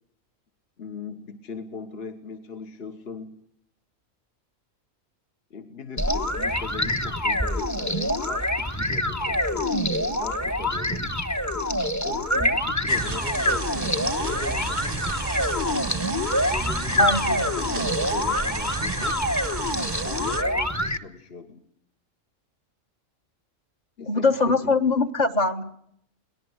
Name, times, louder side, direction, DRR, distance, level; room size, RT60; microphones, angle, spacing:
voice 1, 0.8-3.4 5.5-11.1 12.0-15.0 16.5-19.2 20.0-21.6 24.0-24.7, left 4 dB, 50° left, 5 dB, 1.8 m, -39 dB
sound 1, 6.0-21.0, left 1 dB, 15° left, 1.1 m, -26 dB
sound 2, 12.9-20.4, right 3 dB, 20° right, 0.8 m, -32 dB
voice 2, 17.0-17.5 24.1-25.6, left 3 dB, 35° left, 8 dB, 1.5 m, -22 dB
23.0 x 19.0 x 8.1 m, 0.71 s
omnidirectional pair, 1.3 m